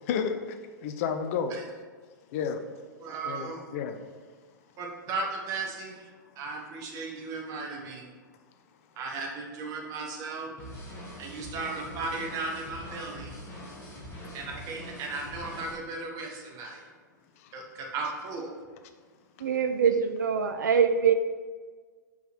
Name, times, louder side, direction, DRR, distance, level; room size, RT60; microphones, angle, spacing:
voice 1, 0.0-1.5 2.3-2.6 3.2-4.0 16.6-16.7 17.4-17.5, left 7 dB, 45° left, 8 dB, 0.5 m, -32 dB
voice 2, 3.0-3.6 4.8-6.1 6.3-8.1 9.0-10.5 11.2-13.3 14.3-16.9 17.5-18.6, right 3 dB, 35° right, 0 dB, 1.3 m, -36 dB
sound 1, 10.6-15.7, left 1 dB, 20° left, 1.8 m, -43 dB
voice 3, 19.4-21.1, right 7 dB, 65° right, 9 dB, 0.4 m, -24 dB
5.4 x 4.6 x 4.3 m, 1.5 s
figure-of-eight pair, 105°, 11 cm